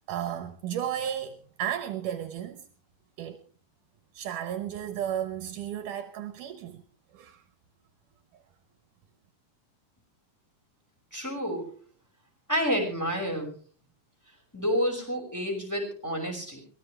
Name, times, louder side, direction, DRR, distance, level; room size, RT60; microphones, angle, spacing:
voice 1, 0.1-2.6 3.2-3.4 4.1-6.8 7.1-7.4, right 10 dB, 75° right, 2.5 m, -33 dB
voice 2, 11.1-11.7 12.5-13.5 14.5-16.6, equal, 5° left, 5.5 m, -29 dB
23.0 x 17.0 x 3.3 m
omnidirectional pair, 3.8 m